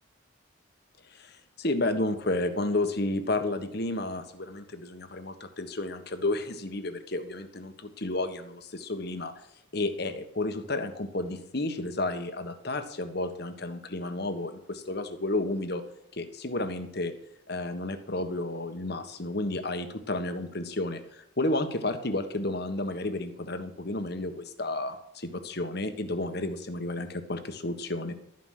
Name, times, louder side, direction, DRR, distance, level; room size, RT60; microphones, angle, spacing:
voice 1, 1.1-9.3 9.7-15.8 16.1-17.1 17.5-28.1, left 2 dB, 50° left, 8 dB, 1.5 m, -32 dB
13.0 x 9.7 x 6.6 m, 0.79 s
head